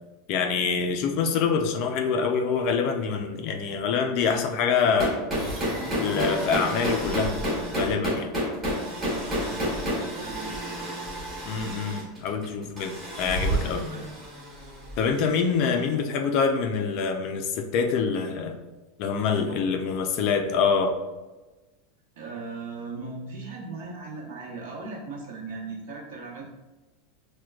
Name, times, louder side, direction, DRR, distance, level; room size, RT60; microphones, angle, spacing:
voice 1, 0.3-5.2 6.0-7.4 7.7-8.3 11.4-13.8 15.0-18.6 19.0-20.9, left 5 dB, 35° left, 6 dB, 0.3 m, -25 dB
sound 1, 4.8-15.6, equal, 15° right, 1.1 m, -30 dB
voice 2, 9.1-10.9 13.5-14.2 15.7-15.9 19.4-19.6 22.1-26.5, right 3 dB, 65° right, -3 dB, 1.0 m, -39 dB
6.0 x 2.2 x 2.2 m, 1.1 s
supercardioid pair, 180°, 0 cm